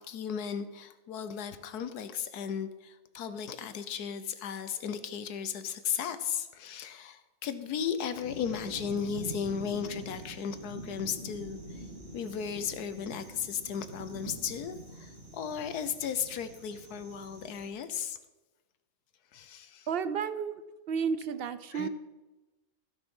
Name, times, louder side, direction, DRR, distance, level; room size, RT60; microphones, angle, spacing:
voice 1, 0.0-11.8 12.1-18.2 19.3-19.9 21.7-21.9, left 7 dB, 80° left, 11 dB, 1.4 m, -35 dB
sound 1, 8.2-17.7, right 1 dB, 30° right, 2.0 m, -45 dB
voice 2, 19.9-20.6 20.9-21.9, right 6 dB, 70° right, 13 dB, 0.5 m, -32 dB
15.5 x 6.5 x 5.5 m, 1.1 s
omnidirectional pair, 1.6 m